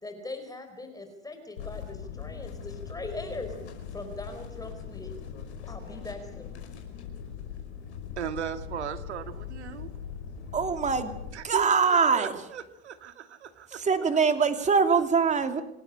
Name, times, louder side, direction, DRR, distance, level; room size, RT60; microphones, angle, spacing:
voice 1, 0.0-3.5 3.9-5.1 5.7-6.5, left 2 dB, 10° left, 6 dB, 4.8 m, -40 dB
sound 1, 1.6-11.3, left 7 dB, 80° left, 5.4 m, -40 dB
voice 2, 8.2-9.9 11.3-13.8, right 8 dB, 85° right, 9 dB, 2.2 m, -37 dB
voice 3, 10.5-11.1 11.4-12.3 13.7-15.6, right 5 dB, 20° right, 8 dB, 2.6 m, -23 dB
27.5 x 13.0 x 9.9 m, 0.84 s
hypercardioid pair, 95°, 33 cm